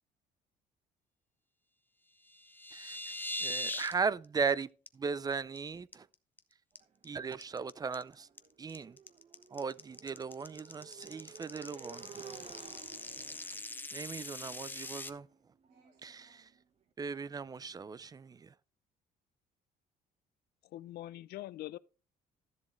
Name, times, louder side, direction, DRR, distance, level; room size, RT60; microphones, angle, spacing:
sound 1, 2.3-3.9 4.2-4.5 4.9-5.0 5.3-5.6 5.9-6.4 6.8-15.1, left 1 dB, 10° left, 0.7 m, -42 dB
voice 1, 3.4-4.7 4.9-6.1 7.0-8.3 8.6-9.0 9.5-12.2 13.9-15.3 16.0-16.3 17.0-18.5, right 5 dB, 20° right, 0.4 m, -37 dB
Motorcycle, 6.8-16.6, right 6 dB, 40° right, 1.3 m, -55 dB
voice 2, 15.6-16.6, right 6 dB, 75° right, 4.8 m, -72 dB
voice 3, 20.7-21.8, left 15 dB, 70° left, 0.5 m, -43 dB
13.0 x 7.3 x 3.1 m
cardioid pair, 110°, 17 cm